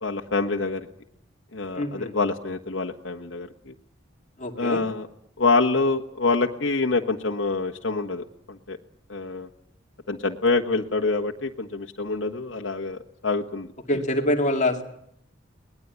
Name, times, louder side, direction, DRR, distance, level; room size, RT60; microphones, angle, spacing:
voice 1, 0.0-0.8 1.5-3.7 4.6-5.1 5.4-8.8 9.1-9.5 10.1-13.7, left 3 dB, 70° left, 2 dB, 1.4 m, -26 dB
voice 2, 1.7-2.1 4.4-4.8 13.9-14.8, left 1 dB, 40° left, 4 dB, 2.5 m, -25 dB
22.5 x 19.5 x 9.5 m, 0.73 s
head